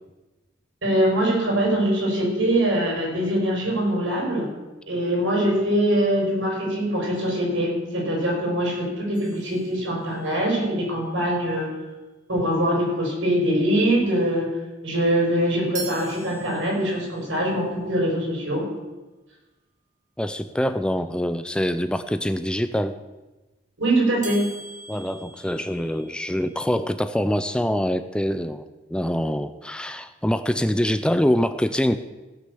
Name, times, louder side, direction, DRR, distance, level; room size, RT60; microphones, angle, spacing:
voice 1, 0.8-4.5 4.9-11.7 12.3-14.5 14.8-18.7 23.8-24.4, right 1 dB, 90° right, -2 dB, 5.6 m, -23 dB
sound 1, 9.1-10.4 15.7-17.2 24.2-26.4, right 3 dB, 40° right, 2.4 m, -40 dB
voice 2, 20.2-23.0 24.9-28.6 28.9-32.0, equal, 5° left, 11 dB, 0.4 m, -24 dB
17.0 x 6.5 x 6.9 m, 1.1 s
head